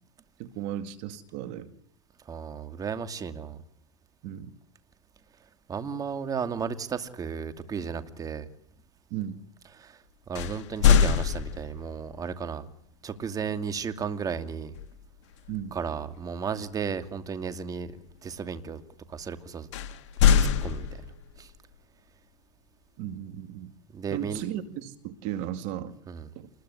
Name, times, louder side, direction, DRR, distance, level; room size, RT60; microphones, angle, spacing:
voice 1, 0.4-1.7 4.2-4.5 9.1-9.4 15.5-15.7 23.0-23.7 24.1-26.0 26.4-26.5, right 11 dB, 50° right, 10 dB, 2.3 m, -35 dB
voice 2, 2.3-3.6 5.7-8.5 9.8-10.0 10.3-12.7 13.0-14.7 15.7-17.9 18.2-18.8 19.1-19.7 20.4-20.9 21.4-21.5 23.9-24.4 26.1-26.2, right 6 dB, 20° right, 10 dB, 2.6 m, -34 dB
sound 1, 10.3-12.0 14.7-15.0 15.5-15.7 19.7-21.4, left 7 dB, 70° left, 2.3 m, -23 dB
28.0 x 21.5 x 9.8 m, 0.73 s
hypercardioid pair, 120°, 16 cm